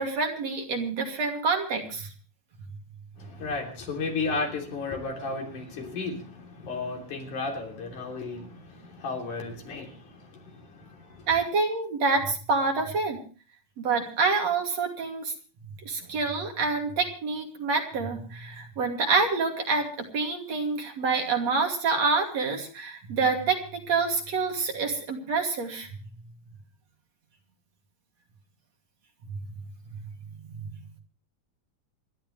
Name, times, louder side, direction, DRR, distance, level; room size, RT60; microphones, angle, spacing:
voice 1, 0.0-2.1 11.3-13.2 13.8-15.3 15.8-25.9 29.2-29.3, right 4 dB, 55° right, 3.7 m, -27 dB
voice 2, 3.2-11.3, left 3 dB, 70° left, 4.7 m, -34 dB
28.0 x 12.0 x 3.2 m
omnidirectional pair, 3.7 m